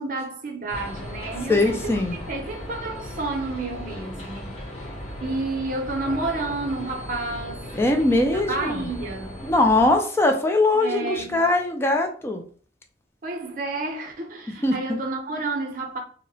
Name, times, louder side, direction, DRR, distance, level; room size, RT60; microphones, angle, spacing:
voice 1, 0.0-2.0 2.3-4.9 5.2-7.7 8.3-9.4 10.8-11.4 13.2-16.0, right 2 dB, 50° right, 0.6 m, -30 dB
sound 1, 0.7-10.0, left 1 dB, 35° left, 0.7 m, -37 dB
voice 2, 1.5-2.2 7.8-8.9 9.4-12.4 14.6-15.0, left 2 dB, 15° left, 0.3 m, -21 dB
2.7 x 2.0 x 2.7 m
head